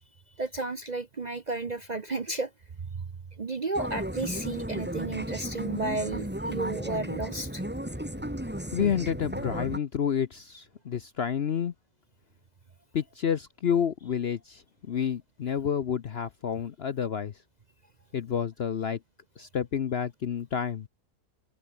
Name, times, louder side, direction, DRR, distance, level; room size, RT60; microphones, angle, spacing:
voice 1, 0.4-2.5 2.9-3.0 3.4-7.6, right 3 dB, 35° right, 0.7 m, -32 dB
sound 1, 3.7-9.8, right 1 dB, 5° right, 2.7 m, -34 dB
voice 2, 8.7-11.7 12.9-17.3 18.1-19.0 19.4-20.9, left 8 dB, 55° left, 0.8 m, -29 dB
omnidirectional pair, 1.7 m